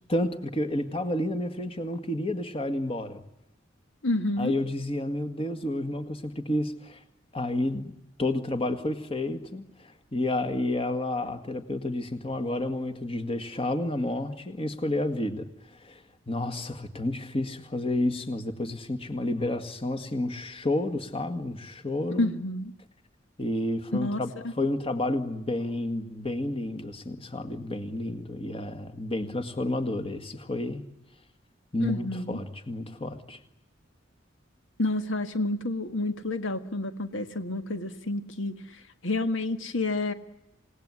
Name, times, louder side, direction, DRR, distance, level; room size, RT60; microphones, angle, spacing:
voice 1, 0.1-3.2 4.4-7.0 7.3-7.9 8.2-22.3 23.4-24.3 24.6-30.8 31.7-33.4, left 1 dB, 30° left, 8 dB, 2.0 m, -30 dB
voice 2, 4.0-4.5 22.2-22.7 23.9-24.5 31.8-32.4 34.8-40.1, left 2 dB, 80° left, 8 dB, 1.8 m, -29 dB
28.0 x 18.5 x 9.7 m, 0.90 s
head